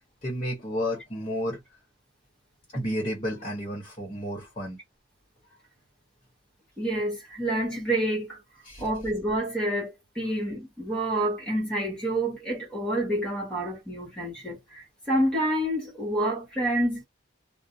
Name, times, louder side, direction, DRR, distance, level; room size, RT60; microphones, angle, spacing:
voice 1, 0.2-1.6 2.7-4.8 8.6-8.9, equal, 25° left, 0.9 m, -31 dB
voice 2, 6.8-8.4 8.8-17.1, right 1 dB, 5° left, 1.1 m, -28 dB
2.4 x 2.1 x 2.6 m
head